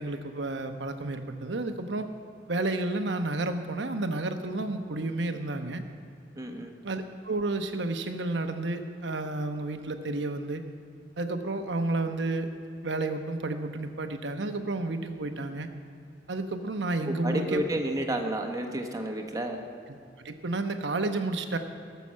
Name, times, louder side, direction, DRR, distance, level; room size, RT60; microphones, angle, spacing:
voice 1, 0.0-2.1 2.5-5.8 6.8-10.6 11.2-12.5 12.8-15.7 16.3-17.6 19.9-20.0 20.2-21.6, right 2 dB, 80° right, 7 dB, 1.0 m, -31 dB
voice 2, 6.4-6.7 17.1-19.6, right 1 dB, 20° right, 3 dB, 1.2 m, -31 dB
17.5 x 6.9 x 7.5 m, 2.6 s
head